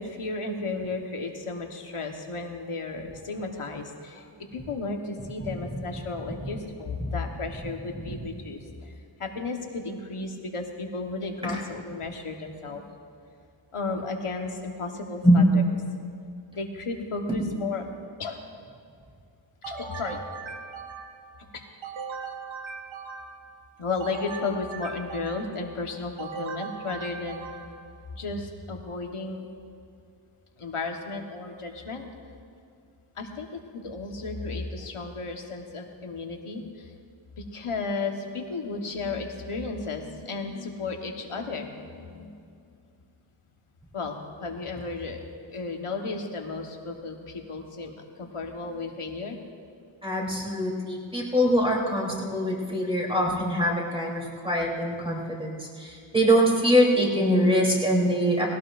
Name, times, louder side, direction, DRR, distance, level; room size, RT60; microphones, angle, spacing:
voice 1, 0.0-12.8 13.7-15.6 16.5-17.8 18.2-18.4 19.6-20.2 21.5-21.6 23.8-27.4 28.1-29.5 30.6-32.0 33.1-36.9 37.4-42.5 43.9-49.4, left 3 dB, 90° left, 3 dB, 1.4 m, -34 dB
sound 1, 19.6-21.3 21.8-23.5 24.0-25.6 26.2-27.9, right 4 dB, 65° right, 1.2 m, -39 dB
voice 2, 50.0-58.4, equal, 10° right, -3 dB, 3.3 m, -23 dB
19.5 x 17.5 x 2.6 m, 2.4 s
wide cardioid pair, 75°, 50 cm